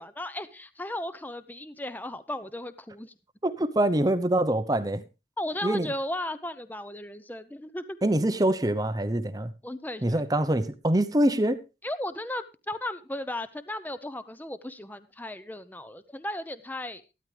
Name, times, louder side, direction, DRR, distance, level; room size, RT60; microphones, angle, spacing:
voice 1, 0.0-3.1 5.4-8.0 9.6-10.2 11.8-17.0, left 1 dB, 10° left, 0.6 m, -35 dB
voice 2, 3.4-5.0 5.6-5.9 8.0-9.5 10.0-11.6, right 1 dB, 20° right, 0.8 m, -25 dB
14.0 x 12.5 x 3.4 m
head